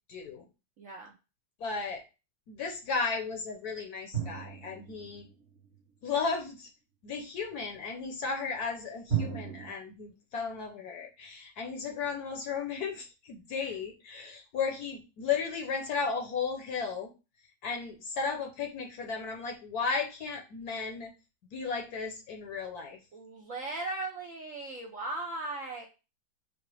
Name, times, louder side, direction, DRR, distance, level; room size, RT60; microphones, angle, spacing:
voice 1, 0.1-0.5 1.6-2.0 2.5-5.3 6.0-6.7 7.0-17.1 17.6-21.1 21.5-23.0, left 5 dB, 60° left, 2 dB, 1.2 m, -34 dB
voice 2, 0.8-1.1 13.6-13.8 23.1-25.9, right 2 dB, 60° right, -1 dB, 0.8 m, -38 dB
sound 1, 4.1-5.8 9.1-9.7, right 8 dB, 40° right, 1.1 m, -34 dB
4.9 x 2.1 x 4.7 m, 0.29 s
omnidirectional pair, 2.1 m